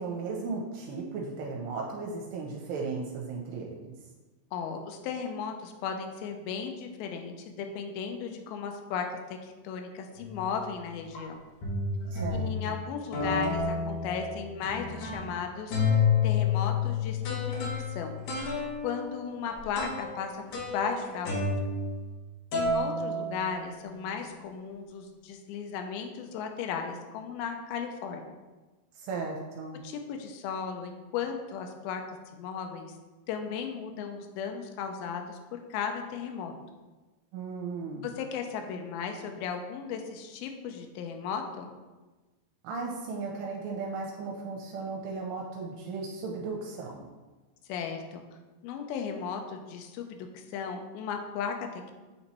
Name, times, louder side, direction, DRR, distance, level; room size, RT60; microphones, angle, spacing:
voice 1, 0.0-3.9 12.1-12.8 29.0-29.8 37.3-38.1 42.6-47.0, right 4 dB, 85° right, -1 dB, 2.7 m, -36 dB
voice 2, 4.5-11.4 12.3-18.2 18.8-20.4 20.7-21.4 22.5-28.2 29.8-32.9 33.3-36.5 38.0-41.7 47.7-48.2 48.6-52.0, left 6 dB, 85° left, 4 dB, 2.1 m, -36 dB
sound 1, 10.2-10.5 11.1-11.2 11.6-12.7 13.1-15.4 15.7-22.2 22.5-23.9, left 4 dB, 70° left, 2.0 m, -30 dB
8.5 x 2.9 x 4.2 m, 1.2 s
omnidirectional pair, 4.8 m